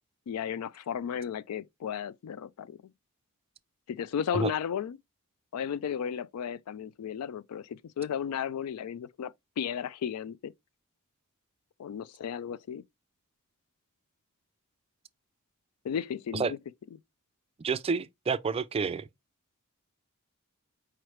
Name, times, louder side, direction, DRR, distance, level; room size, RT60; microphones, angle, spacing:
voice 1, 0.3-2.9 3.9-5.0 5.5-10.5 11.8-12.8 15.8-16.6, left 8 dB, 85° left, 0.3 m, -34 dB
voice 2, 17.6-19.1, right 5 dB, 25° right, 0.3 m, -29 dB
4.7 x 3.1 x 3.1 m
head